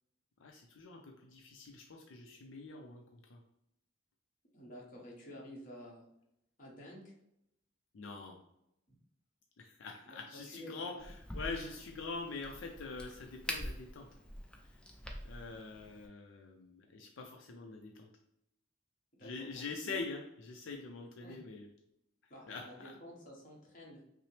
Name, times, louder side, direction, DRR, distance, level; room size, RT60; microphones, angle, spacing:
voice 1, 0.4-3.4 7.9-8.4 9.6-14.1 14.6-14.8 15.2-18.1 19.2-21.7 22.2-23.0, left 4 dB, 80° left, 2 dB, 0.5 m, -45 dB
voice 2, 4.5-6.0 6.6-7.1 10.1-11.0 19.2-20.0 21.2-21.4 22.3-24.0, equal, 45° left, -3 dB, 1.1 m, -51 dB
Crack, 11.0-16.1, left 1 dB, 5° left, 0.4 m, -45 dB
5.7 x 2.0 x 3.1 m, 0.80 s
head